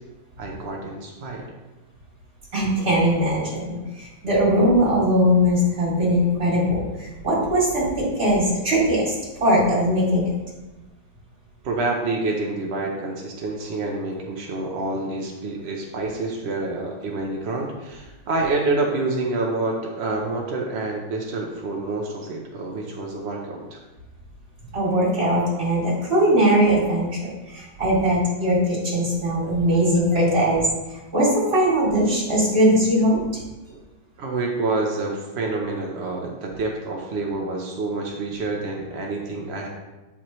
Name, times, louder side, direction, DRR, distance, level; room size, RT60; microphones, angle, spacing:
voice 1, 0.4-1.4 11.6-23.8 33.7-33.8 34.2-39.7, right 2 dB, 60° right, 0 dB, 0.6 m, -27 dB
voice 2, 2.5-10.3 24.7-30.6 30.9-33.4, equal, 30° right, -6 dB, 2.8 m, -20 dB
8.6 x 5.7 x 3.1 m, 1.1 s
omnidirectional pair, 2.2 m